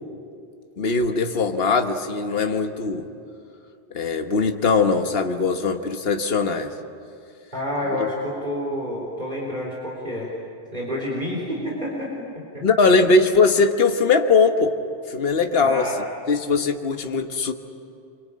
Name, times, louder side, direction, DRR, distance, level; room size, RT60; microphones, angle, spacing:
voice 1, 0.8-3.1 3.9-6.7 8.0-8.1 12.6-14.7 15.1-15.9 16.3-17.5, left 4 dB, 60° left, 6 dB, 1.4 m, -20 dB
voice 2, 7.5-10.3 10.7-12.6 15.6-15.9, left 1 dB, 45° right, -3 dB, 4.2 m, -29 dB
26.0 x 25.0 x 8.6 m, 2.5 s
omnidirectional pair, 1.1 m